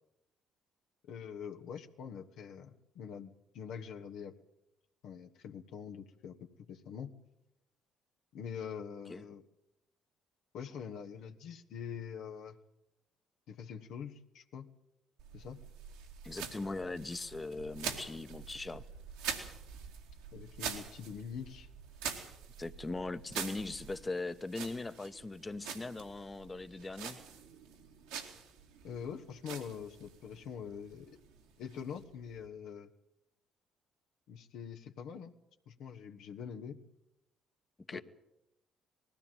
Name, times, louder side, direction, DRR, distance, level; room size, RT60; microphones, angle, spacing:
voice 1, 1.1-4.3 5.0-7.1 8.3-9.4 10.5-12.6 13.5-14.7 15.3-15.6 20.3-21.7 28.8-31.1 31.6-32.9 34.3-35.3 35.7-36.8 37.9-38.0, left 7 dB, 70° left, 4 dB, 1.2 m, -44 dB
sound 1, 15.2-32.5, right 7 dB, 80° right, 2.5 m, -45 dB
voice 2, 16.2-18.8 22.6-27.2 37.9-38.0, left 3 dB, 25° left, 12 dB, 1.1 m, -40 dB
20.0 x 15.5 x 9.0 m, 0.86 s
hypercardioid pair, 50°, 0 cm